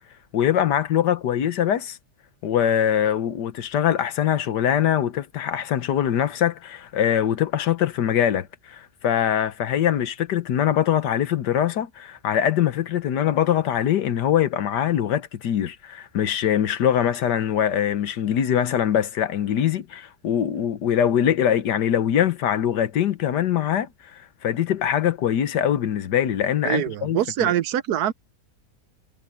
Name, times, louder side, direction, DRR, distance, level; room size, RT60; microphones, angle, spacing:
voice 1, 0.3-2.0 2.4-23.9 24.4-27.5, left 10 dB, 90° left, 1.6 m, -23 dB
voice 2, 26.6-28.1, right 11 dB, 75° right, 1.2 m, -24 dB
omnidirectional pair, 1.8 m